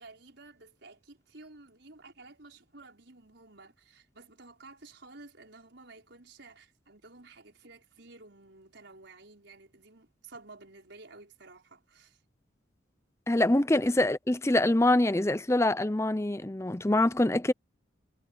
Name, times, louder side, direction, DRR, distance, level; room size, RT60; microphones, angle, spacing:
voice 1, 0.0-12.2, right 3 dB, 70° right, 5.1 m, -52 dB
voice 2, 13.3-17.5, left 1 dB, 15° left, 0.6 m, -25 dB
head